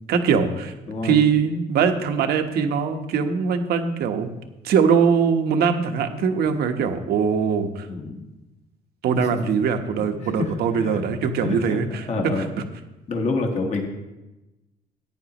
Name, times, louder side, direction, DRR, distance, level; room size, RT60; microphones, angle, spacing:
voice 1, 0.1-0.7 1.0-4.3 4.6-7.9 9.0-12.5, right 6 dB, 70° right, 6 dB, 1.2 m, -22 dB
voice 2, 0.9-1.2 7.9-8.3 9.2-9.4 10.0-11.0 11.4-12.5 13.1-13.9, left 3 dB, 40° left, 2 dB, 1.5 m, -28 dB
16.0 x 9.4 x 3.0 m, 1.0 s
cardioid pair, 110°, 17 cm